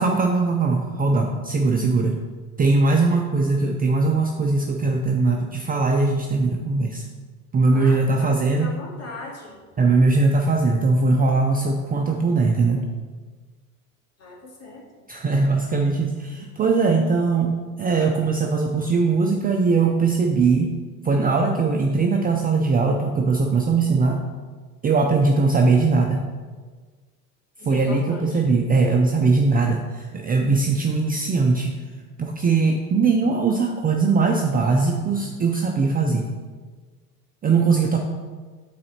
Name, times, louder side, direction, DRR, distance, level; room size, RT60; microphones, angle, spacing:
voice 1, 0.0-2.2 2.6-7.0 7.5-8.7 9.8-12.8 15.1-20.7 21.0-24.2 24.8-26.2 27.6-31.7 32.2-36.3 37.4-38.0, right 3 dB, 20° right, 1 dB, 0.5 m, -20 dB
voice 2, 7.7-9.6 14.2-14.8 27.6-28.4, left 2 dB, 35° left, -2 dB, 2.2 m, -38 dB
8.5 x 4.1 x 4.3 m, 1.4 s
hypercardioid pair, 90°, 46 cm